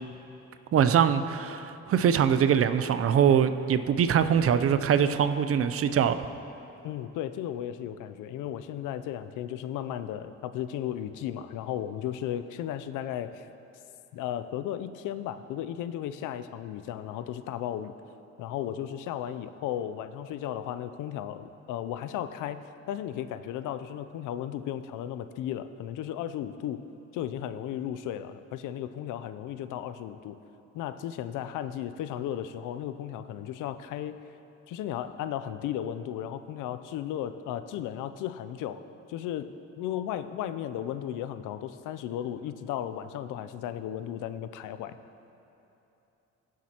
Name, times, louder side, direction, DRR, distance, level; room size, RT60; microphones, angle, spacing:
voice 1, 0.7-6.2, right 8 dB, 50° right, 11 dB, 0.5 m, -23 dB
voice 2, 6.8-13.5 14.1-17.9 18.4-26.8 27.1-30.4 30.7-34.1 34.7-45.0, left 11 dB, 90° left, 12 dB, 0.5 m, -35 dB
16.0 x 7.5 x 2.9 m, 3.0 s
cardioid pair, 90°, 30 cm